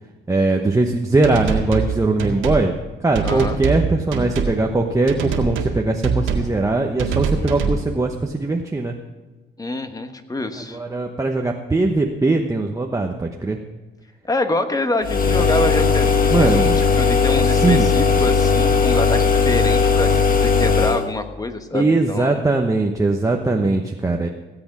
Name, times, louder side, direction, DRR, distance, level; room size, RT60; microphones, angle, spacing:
voice 1, 0.3-2.7 3.0-9.0 10.7-13.6 16.3-16.8 17.6-17.9 21.7-24.3, right 2 dB, 15° right, 2 dB, 1.0 m, -20 dB
sound 1, 1.2-1.9 2.2-2.6 3.1-3.8 4.1-4.5 5.1-5.7 6.0-6.5 7.0-7.8, right 6 dB, 85° right, 1.9 m, -23 dB
voice 2, 3.2-3.6 9.6-10.8 14.2-22.4, left 2 dB, 20° left, 8 dB, 1.3 m, -26 dB
sound 2, 15.0-21.1, left 5 dB, 45° left, 1.5 m, -17 dB
17.0 x 7.9 x 6.1 m, 1.3 s
cardioid pair, 90°, 20 cm